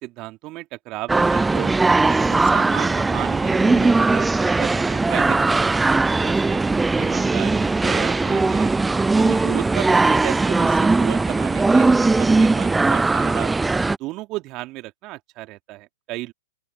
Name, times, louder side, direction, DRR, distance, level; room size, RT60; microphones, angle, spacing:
voice 1, 0.0-1.7 2.1-6.6 7.0-8.8 9.2-13.5 14.0-16.3, right 19 dB, 35° right, 2.9 m, -33 dB
sound 1, 1.1-14.0, right 3 dB, 10° right, 0.5 m, -19 dB
open air
figure-of-eight pair, 115°, 0 cm